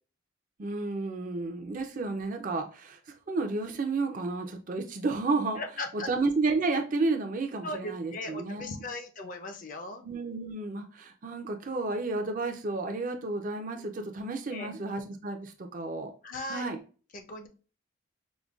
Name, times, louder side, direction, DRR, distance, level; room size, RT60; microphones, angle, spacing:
voice 1, 0.6-3.0 3.3-5.6 6.1-8.8 10.0-16.1 16.5-16.8, right 3 dB, 40° right, 0.4 m, -31 dB
voice 2, 5.6-6.1 7.6-10.0 14.5-14.7 16.2-16.7 17.1-17.5, left 2 dB, 40° left, 0.5 m, -38 dB
5.0 x 2.2 x 2.3 m
head